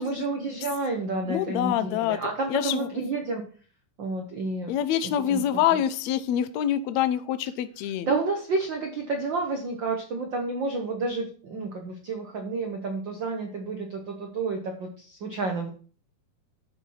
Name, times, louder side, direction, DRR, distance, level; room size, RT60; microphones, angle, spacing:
voice 1, 0.0-3.4 4.0-4.8 5.0-5.4 8.0-15.7, right 3 dB, 75° right, 3 dB, 1.0 m, -30 dB
voice 2, 1.3-2.2 2.5-2.9 4.7-8.1, left 10 dB, 75° left, 12 dB, 1.7 m, -26 dB
12.0 x 4.7 x 5.5 m, 0.41 s
omnidirectional pair, 3.8 m